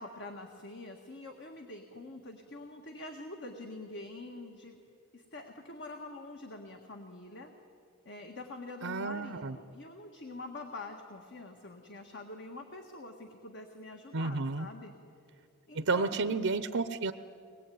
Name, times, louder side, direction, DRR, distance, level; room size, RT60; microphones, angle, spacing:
voice 1, 0.0-4.8 5.1-7.5 8.1-14.9 15.7-16.4, left 2 dB, 55° left, 3 dB, 1.8 m, -45 dB
voice 2, 8.8-9.5 14.1-14.7 15.7-17.1, right 3 dB, 60° right, 10 dB, 0.8 m, -31 dB
24.0 x 20.5 x 9.4 m, 2.5 s
head